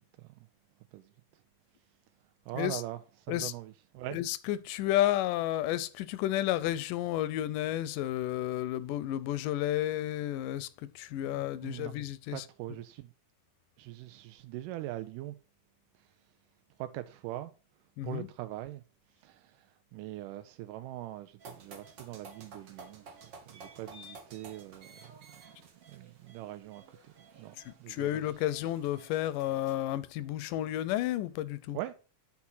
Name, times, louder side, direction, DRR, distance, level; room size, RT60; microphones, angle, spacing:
voice 1, 2.5-4.2 11.2-11.9 12.3-13.1 13.8-15.4 16.8-17.5 18.0-18.8 19.2-23.2 23.5-25.5 25.9-28.2 31.7-31.9, right 15 dB, 90° right, 2.2 m, -42 dB
voice 2, 4.1-10.7 11.0-12.4 18.0-18.3 27.7-31.8, left 13 dB, 90° left, 2.3 m, -31 dB
sound 1, 21.4-29.8, right 3 dB, 55° right, 1.3 m, -53 dB
9.6 x 4.5 x 5.6 m
omnidirectional pair, 3.7 m